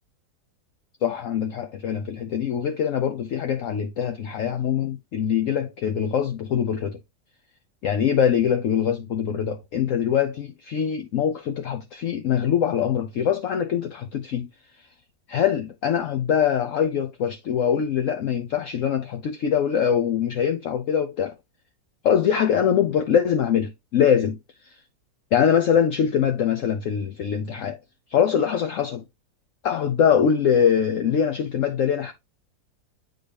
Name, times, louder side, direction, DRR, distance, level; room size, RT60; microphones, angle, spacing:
voice 1, 1.0-7.0 7.8-14.5 15.3-21.4 22.0-24.4 24.6-24.8 25.3-27.8 28.1-29.0 29.6-32.1, left 8 dB, 65° left, 0.8 m, -23 dB
8.4 x 3.9 x 3.3 m
omnidirectional pair, 2.0 m